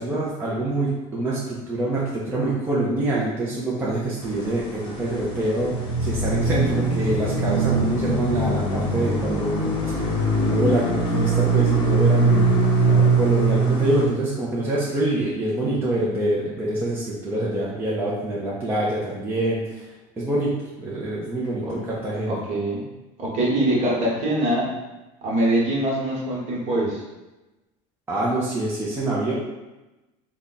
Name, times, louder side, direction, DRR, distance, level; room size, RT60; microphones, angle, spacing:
voice 1, 0.0-5.7 6.0-10.1 10.4-12.5 13.2-19.9 20.2-22.4 28.1-29.3, right 1 dB, 10° right, -6 dB, 0.5 m, -25 dB
sound 1, 4.2-14.0, right 3 dB, 25° left, 0.8 m, -22 dB
voice 2, 12.8-13.2 21.6-21.8 22.3-22.8 23.2-24.7 25.2-27.0, right 1 dB, 40° right, -4 dB, 1.2 m, -23 dB
3.5 x 2.2 x 3.9 m, 1.0 s
cardioid pair, 155°, 17 cm